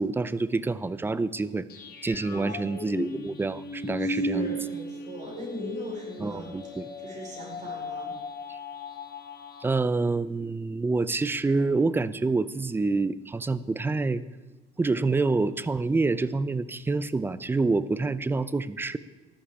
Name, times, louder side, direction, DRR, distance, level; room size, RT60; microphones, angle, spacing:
voice 1, 0.0-1.7 2.0-4.5 6.2-6.9 8.5-8.6 9.6-14.2 14.8-19.0, right 3 dB, 10° right, 15 dB, 0.4 m, -27 dB
sound 1, 1.7-9.8, left 1 dB, 50° left, 1.8 m, -36 dB
voice 2, 2.2-2.5 4.0-6.5 7.0-8.1, equal, 35° right, -2 dB, 4.6 m, -39 dB
14.5 x 11.5 x 4.8 m, 1.2 s
cardioid pair, 135°, 20 cm